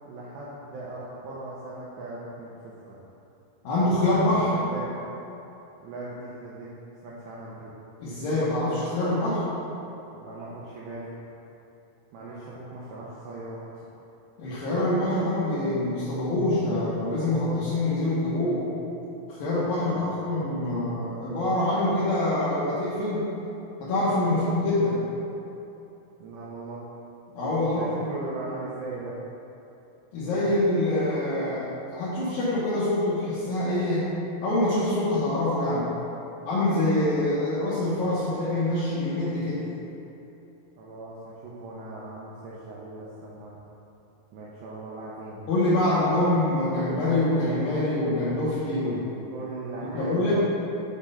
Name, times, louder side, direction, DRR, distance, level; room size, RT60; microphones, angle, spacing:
voice 1, 0.1-2.5 2.9-3.0 4.4-5.0 5.8-6.7 7.0-7.8 10.1-11.1 12.1-13.9 19.8-20.2 24.3-24.5 26.2-26.8 27.7-29.1 40.8-43.6 44.3-45.4 49.3-50.3, right 2 dB, 90° right, -6 dB, 2.4 m, -39 dB
voice 2, 3.6-4.5 8.0-9.5 14.4-18.6 19.3-23.3 23.8-25.0 27.3-27.9 30.1-31.7 31.9-34.1 34.4-35.9 36.5-39.6 45.5-49.1 49.9-50.3, left 1 dB, 75° left, -11 dB, 2.1 m, -25 dB
8.1 x 3.5 x 5.5 m, 2.9 s
omnidirectional pair, 5.8 m